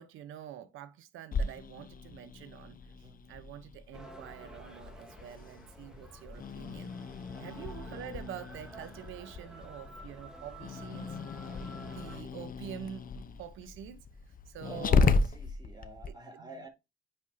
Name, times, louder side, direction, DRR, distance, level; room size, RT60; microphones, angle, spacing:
voice 1, 0.0-6.9 7.4-11.2 11.7-15.0 16.1-16.7, right 9 dB, 90° right, 1.1 m, -47 dB
Growling, 1.3-16.1, left 4 dB, 45° left, 1.0 m, -35 dB
voice 2, 2.9-3.2 5.8-6.1 7.3-7.7 14.6-16.7, right 2 dB, 20° right, 4.0 m, -47 dB
sound 1, 3.9-12.2, right 1 dB, 5° right, 2.8 m, -51 dB
9.5 x 5.5 x 2.8 m
cardioid pair, 90°, 20 cm